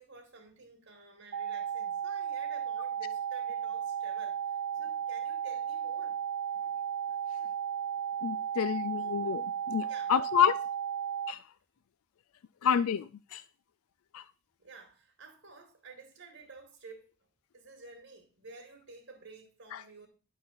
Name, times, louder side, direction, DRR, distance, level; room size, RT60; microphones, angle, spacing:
voice 1, 0.0-6.2 9.9-10.6 14.6-17.3 17.5-20.1, right 3 dB, 60° right, 2.2 m, -52 dB
sound 1, 1.3-11.3, right 8 dB, 80° right, 0.4 m, -34 dB
voice 2, 8.2-10.5 11.3-11.4 12.6-13.4 14.1-14.2 19.7-19.8, left 8 dB, 75° left, 0.4 m, -29 dB
11.0 x 3.9 x 7.1 m
head